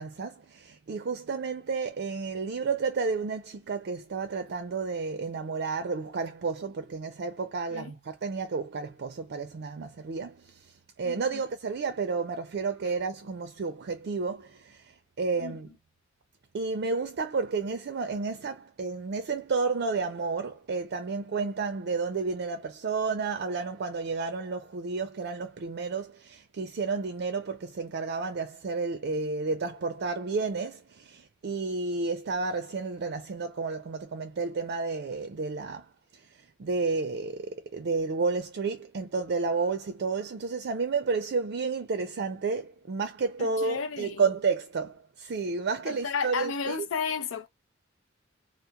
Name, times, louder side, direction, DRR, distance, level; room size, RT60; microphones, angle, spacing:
voice 1, 0.0-10.6 11.0-15.7 16.5-35.9 36.6-46.9, right 4 dB, 55° right, 0.4 m, -31 dB
voice 2, 11.0-11.4 15.4-15.6 43.4-44.2 45.9-47.5, left 6 dB, 80° left, 0.5 m, -33 dB
2.8 x 2.0 x 2.2 m
head